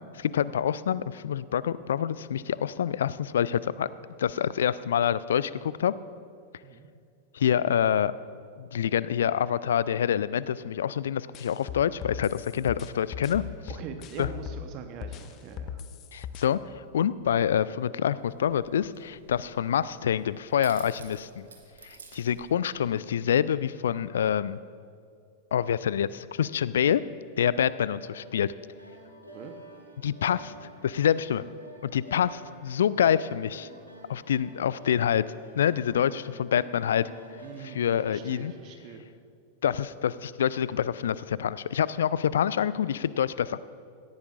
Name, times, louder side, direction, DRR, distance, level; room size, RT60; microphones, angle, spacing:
voice 1, 0.1-3.9 4.2-5.9 7.3-8.1 8.6-13.5 14.2-14.3 16.1-16.6 16.9-21.5 21.8-24.6 25.5-27.0 27.4-28.5 30.0-30.5 30.8-31.4 31.8-33.7 34.1-35.2 35.6-37.0 37.7-38.5 39.6-43.6, left 9 dB, 65° left, 18 dB, 0.3 m, -26 dB
sound 1, 11.3-14.7 15.0-16.4, left 9 dB, 35° left, 0.6 m, -38 dB
voice 2, 13.7-15.8 29.3-29.5 37.4-39.1, right 6 dB, 40° right, 6 dB, 1.0 m, -42 dB
sound 2, 18.2-23.1, right 5 dB, 70° right, 1.3 m, -52 dB
sound 3, 27.6-38.6, right 1 dB, 90° right, 2.0 m, -49 dB
17.5 x 14.5 x 2.5 m, 2.3 s
figure-of-eight pair, 95°, 0 cm